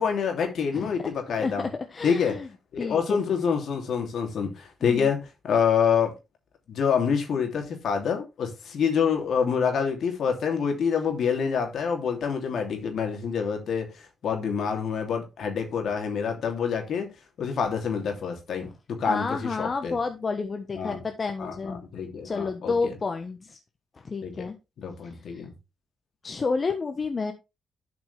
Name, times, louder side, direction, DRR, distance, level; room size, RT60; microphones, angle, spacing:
voice 1, 0.0-1.7 2.0-2.4 2.8-5.2 5.4-6.1 6.7-13.9 14.2-17.1 17.4-19.9 20.7-21.0 21.4-22.9 24.2-24.5 24.8-25.5, left 6 dB, 65° left, 3.0 m, -27 dB
voice 2, 0.7-1.1 1.4-2.5 2.8-3.2 4.8-5.1 19.1-21.8 22.2-23.6 24.0-24.6 25.0-25.4 26.2-27.3, left 4 dB, 45° left, 1.3 m, -30 dB
11.5 x 6.0 x 3.5 m
hypercardioid pair, 45°, 0 cm